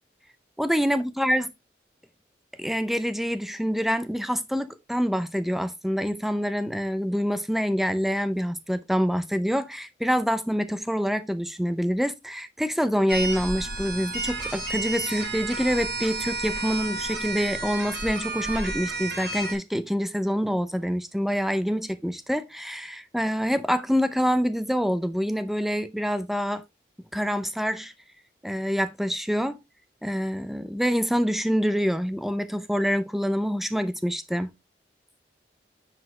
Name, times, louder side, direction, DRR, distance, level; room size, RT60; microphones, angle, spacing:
voice 1, 0.6-1.5 2.6-26.6 27.1-27.9 28.4-29.6 30.0-34.5, equal, ahead, 0.6 m, -26 dB
sound 1, 13.1-19.5, right 3 dB, 85° right, 4.1 m, -31 dB
9.7 x 5.0 x 3.2 m
head